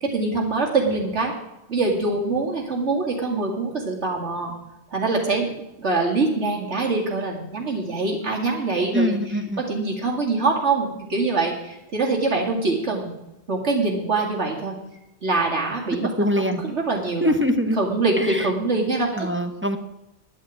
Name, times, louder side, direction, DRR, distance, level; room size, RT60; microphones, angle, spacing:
voice 1, 0.0-1.3 1.7-4.5 4.9-5.5 5.8-9.2 9.6-13.1 13.5-14.7 15.2-16.1 16.4-17.3 17.8-19.3, right 3 dB, 85° right, -1 dB, 2.7 m, -24 dB
voice 2, 8.9-9.6 16.0-16.6 17.2-17.8 18.2-18.5 19.1-19.8, equal, 10° right, 7 dB, 0.8 m, -23 dB
10.5 x 8.7 x 8.5 m, 0.90 s
omnidirectional pair, 1.2 m